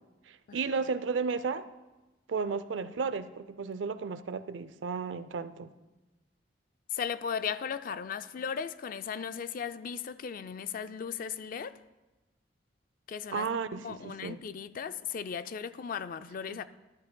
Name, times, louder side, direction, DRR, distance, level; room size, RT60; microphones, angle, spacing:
voice 1, 0.3-1.7 2.3-5.7 13.3-14.4 16.5-16.6, right 5 dB, 80° right, 0.4 m, -33 dB
voice 2, 6.9-11.8 13.1-13.5 13.8-16.6, left 7 dB, 50° left, 0.3 m, -36 dB
13.0 x 11.5 x 2.2 m
head